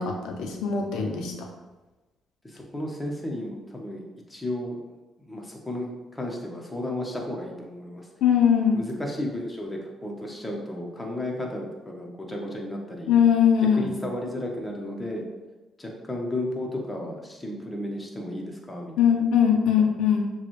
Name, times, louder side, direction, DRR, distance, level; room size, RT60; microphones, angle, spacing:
voice 1, 0.0-1.5 8.2-8.8 13.1-13.9 19.0-20.3, left 8 dB, 85° left, 1 dB, 0.7 m, -21 dB
voice 2, 2.4-4.0 4.3-4.8 5.3-8.1 8.7-13.1 13.8-15.3 15.8-19.0, left 1 dB, 15° left, 0 dB, 1.0 m, -33 dB
6.8 x 2.4 x 3.2 m, 1.1 s
cardioid pair, 90°, 0 cm